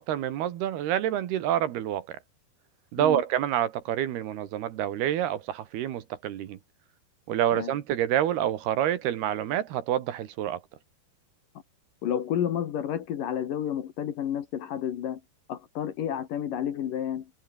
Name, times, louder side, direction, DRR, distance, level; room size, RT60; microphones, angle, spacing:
voice 1, 0.0-2.2 2.9-6.6 7.3-10.6, right 11 dB, 70° right, 3.3 m, -27 dB
voice 2, 12.0-15.2 15.5-17.3, left 10 dB, 60° left, 2.8 m, -30 dB
omnidirectional pair, 5.1 m